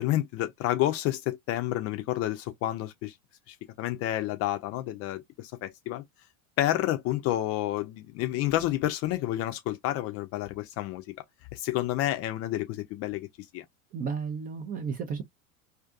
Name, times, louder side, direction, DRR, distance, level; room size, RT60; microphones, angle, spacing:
voice 1, 0.0-3.1 3.5-6.0 6.6-11.0 11.5-13.3 13.5-13.6, left 14 dB, 35° left, 0.5 m, -29 dB
voice 2, 13.9-15.2, right 6 dB, 20° right, 0.4 m, -33 dB
2.5 x 2.4 x 2.4 m
figure-of-eight pair, 85°, 41 cm